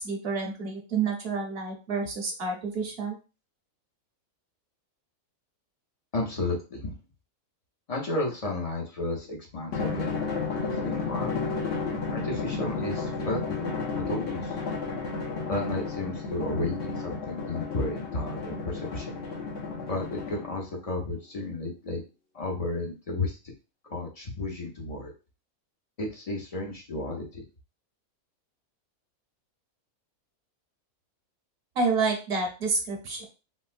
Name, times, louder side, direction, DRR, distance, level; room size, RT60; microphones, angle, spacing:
voice 1, 0.0-3.2 31.8-33.2, right 4 dB, 50° right, 2 dB, 0.8 m, -29 dB
voice 2, 6.1-6.9 7.9-11.4 12.1-14.6 15.5-19.2 19.8-22.0 22.3-23.4 23.9-25.1 26.0-27.4, left 2 dB, 40° left, -1 dB, 0.5 m, -33 dB
Drum, 9.7-20.7, left 4 dB, 55° left, 1.0 m, -32 dB
4.0 x 2.1 x 2.5 m, 0.32 s
omnidirectional pair, 1.6 m